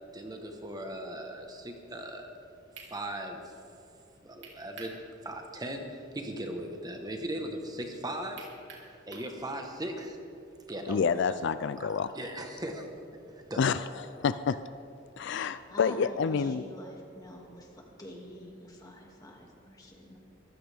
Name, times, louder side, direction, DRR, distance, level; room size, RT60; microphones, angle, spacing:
voice 1, 0.1-2.3 2.9-3.5 4.2-8.5 9.1-10.2 10.7-11.0 11.8-12.9 13.3-13.9, right 1 dB, 20° right, 3 dB, 1.3 m, -38 dB
sound 1, 2.7-2.9 4.4-5.0 5.4-5.5 8.4-9.3, right 4 dB, 65° right, 3.2 m, -47 dB
voice 2, 10.9-12.1 13.6-13.8 14.1-14.6 15.2-16.6, left 6 dB, 65° left, 13 dB, 0.4 m, -28 dB
voice 3, 15.7-20.2, equal, 20° left, -1 dB, 2.3 m, -47 dB
23.5 x 15.0 x 3.5 m, 2.6 s
head